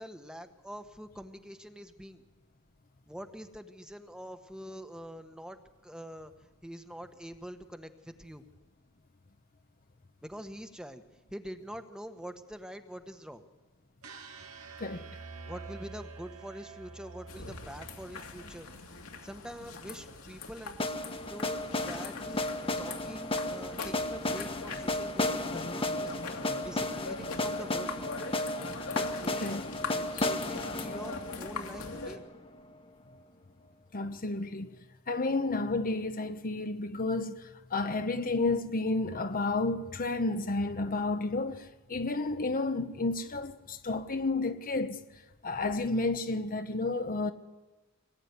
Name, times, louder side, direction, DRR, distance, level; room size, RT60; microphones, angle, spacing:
voice 1, 0.0-2.2 3.1-5.6 5.8-6.3 6.6-8.4 10.2-11.0 11.3-13.4 15.5-18.7 19.2-20.9 21.3-28.0 28.9-29.5 29.9-32.3, equal, 5° right, 1.4 m, -45 dB
sound 1, 14.0-20.1, right 4 dB, 75° right, 2.5 m, -48 dB
voice 2, 14.8-15.1 29.4-29.6 33.9-34.7 35.1-45.0 45.4-47.3, left 3 dB, 40° left, 1.0 m, -31 dB
sound 2, 17.3-32.2, left 4 dB, 75° left, 2.7 m, -42 dB
sound 3, 20.8-32.7, left 2 dB, 25° left, 1.4 m, -34 dB
25.0 x 19.5 x 9.7 m
head